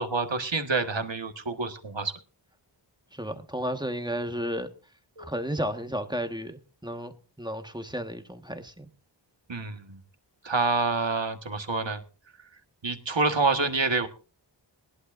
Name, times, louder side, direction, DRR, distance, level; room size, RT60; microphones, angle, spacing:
voice 1, 0.0-2.1 5.2-5.3 9.5-10.0 10.4-12.0 12.8-14.1, right 3 dB, 70° right, 1.6 m, -27 dB
voice 2, 3.1-4.7 5.2-7.1 7.4-8.9, equal, 10° right, 1.5 m, -33 dB
21.0 x 11.0 x 2.6 m
wide cardioid pair, 45°, 46 cm